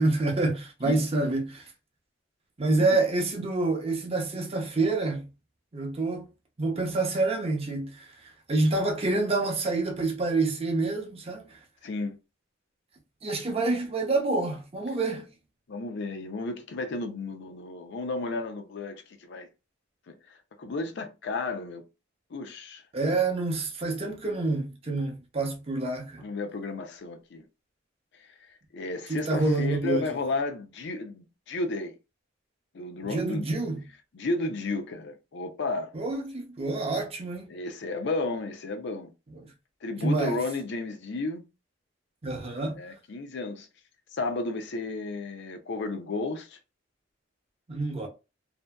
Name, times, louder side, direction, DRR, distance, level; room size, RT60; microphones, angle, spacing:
voice 1, 0.0-1.7 2.6-5.3 5.7-6.3 6.6-8.2 8.5-11.6 13.2-15.3 22.9-26.3 29.1-30.1 33.0-33.8 35.9-37.5 40.0-40.4 42.2-42.8 47.7-48.1, right 2 dB, 30° right, 0.6 m, -27 dB
voice 2, 11.8-12.2 15.7-19.5 20.1-21.8 22.3-22.8 26.2-27.5 28.2-31.9 32.7-33.5 34.1-35.9 37.5-39.1 39.8-41.4 42.8-43.7 44.1-46.6, left 3 dB, 65° left, 0.5 m, -33 dB
2.6 x 2.6 x 2.2 m
head